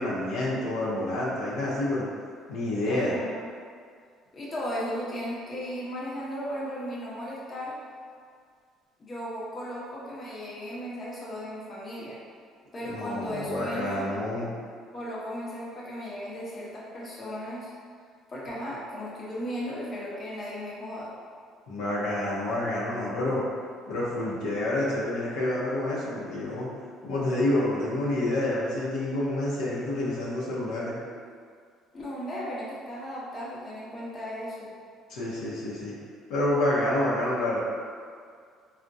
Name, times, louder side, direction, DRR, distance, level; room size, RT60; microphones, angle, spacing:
voice 1, 0.0-2.1 2.5-3.2 12.8-14.5 21.7-23.4 23.9-26.7 27.0-31.0 35.1-35.9 36.3-37.6, left 1 dB, 80° left, -7 dB, 0.6 m, -28 dB
voice 2, 2.8-3.4 4.3-7.8 9.0-12.2 12.7-14.1 14.9-17.7 18.3-21.1 31.9-34.7, equal, 35° left, -6 dB, 0.7 m, -36 dB
3.4 x 2.1 x 2.6 m, 2.1 s
supercardioid pair, 95°, 0 cm